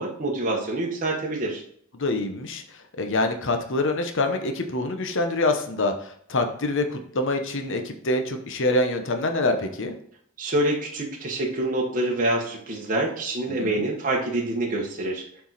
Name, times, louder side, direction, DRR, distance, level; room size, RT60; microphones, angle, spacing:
voice 1, 0.0-1.6 10.4-15.2, right 1 dB, 40° right, -2 dB, 1.2 m, -26 dB
voice 2, 2.0-2.6 3.0-9.9 13.5-13.8, left 2 dB, 60° left, 6 dB, 0.9 m, -25 dB
7.2 x 4.7 x 4.1 m, 0.65 s
head